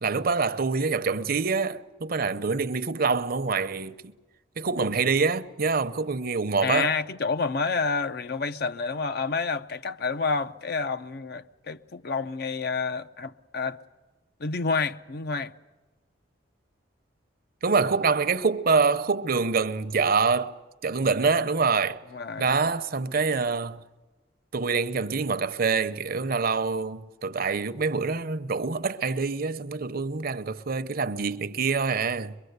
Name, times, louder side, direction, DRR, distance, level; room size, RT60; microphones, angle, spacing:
voice 1, 0.0-4.0 4.6-6.9 17.6-22.0 22.4-23.8 24.5-32.4, right 4 dB, 55° right, 0.8 m, -26 dB
voice 2, 6.6-13.8 14.4-15.5 22.1-22.5, left 4 dB, 60° left, 0.7 m, -29 dB
23.0 x 23.0 x 8.1 m
head